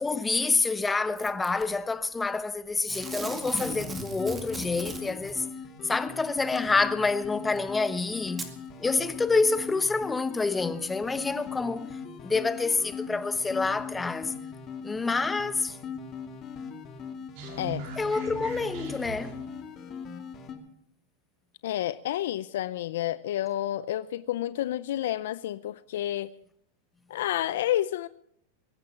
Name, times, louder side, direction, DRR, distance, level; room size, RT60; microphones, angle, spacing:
voice 1, 0.0-5.5 5.8-8.5 8.8-12.0 12.2-14.3 14.8-15.8 18.0-19.4, left 3 dB, 10° left, 1.0 m, -27 dB
Packing tape duct tape / Tearing, 1.2-1.6 2.8-5.4 6.6-6.7 7.6-7.7 8.3-8.5 9.2-9.3, right 3 dB, 15° right, 2.2 m, -38 dB
sound 1, 2.9-20.5, left 6 dB, 35° left, 2.7 m, -40 dB
sound 2, 17.4-19.6, right 3 dB, 55° right, 4.1 m, -40 dB
voice 2, 21.6-26.3 27.1-28.1, left 13 dB, 75° left, 0.5 m, -30 dB
22.5 x 9.7 x 5.9 m
hypercardioid pair, 120°, 0 cm